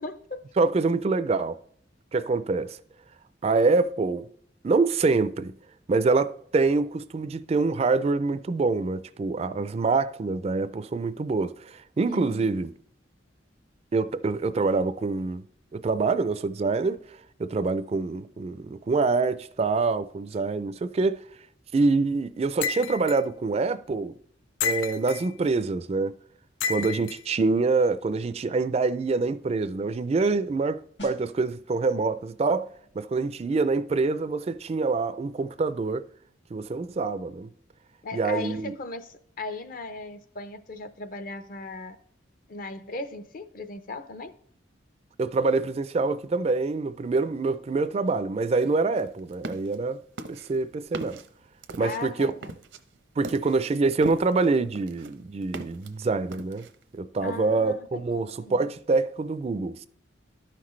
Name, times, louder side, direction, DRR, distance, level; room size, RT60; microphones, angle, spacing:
voice 1, 0.0-0.4 12.1-12.5 38.0-42.0 42.5-44.3 51.8-52.5 57.2-58.0 58.4-58.7, left 2 dB, 50° left, 0.6 m, -37 dB
voice 2, 0.6-1.6 2.1-2.8 3.4-4.3 4.6-5.5 5.9-12.7 13.9-15.4 15.7-17.0 17.4-21.2 21.7-24.1 24.6-26.1 26.7-32.7 33.0-36.0 36.5-37.5 38.1-38.7 45.2-50.0 50.3-51.2 51.8-52.3 53.2-56.7 57.0-59.8, right 3 dB, 35° right, 0.3 m, -25 dB
sound 1, 22.6-23.2 24.6-25.3 26.6-27.2, left 6 dB, 90° left, 0.5 m, -30 dB
sound 2, 36.3-41.5 41.8-42.0, left 1 dB, 70° left, 2.7 m, -54 dB
sound 3, 49.0-49.8 50.2-54.4 54.8-55.9 56.3-56.8, right 2 dB, 85° right, 0.7 m, -40 dB
12.0 x 5.9 x 3.1 m
head